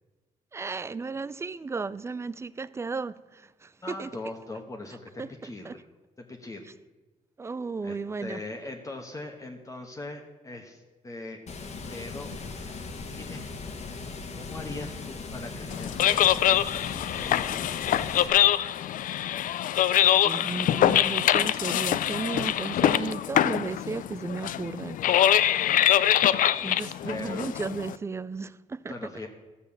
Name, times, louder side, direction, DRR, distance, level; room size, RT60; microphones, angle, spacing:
voice 1, 0.5-4.1 5.2-5.8 7.4-8.4 20.2-25.0 25.4-25.9 26.6-28.9, right 4 dB, 20° right, 0.3 m, -35 dB
voice 2, 3.8-5.8 6.2-6.7 7.8-11.4 11.9-12.3 13.1-13.4 14.3-16.6 17.2-17.7 27.1-27.5 28.9-29.3, left 2 dB, 25° left, 1.2 m, -40 dB
Water, 11.5-18.3, left 4 dB, 55° left, 1.5 m, -39 dB
sound 1, 15.7-28.0, left 11 dB, 75° left, 0.4 m, -24 dB
13.5 x 7.0 x 7.0 m
cardioid pair, 120°, 14 cm